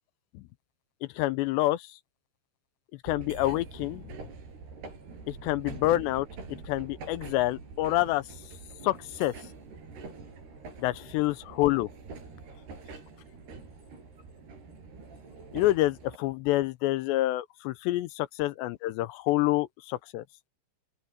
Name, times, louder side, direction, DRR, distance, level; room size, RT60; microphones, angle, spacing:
voice 1, 1.2-1.8 3.0-4.0 5.3-8.2 8.8-9.3 10.8-11.9 15.5-20.2, left 16 dB, 80° left, 2.8 m, -27 dB
sound 1, 3.1-16.2, right 4 dB, 65° right, 8.6 m, -45 dB
open air
omnidirectional pair, 5.2 m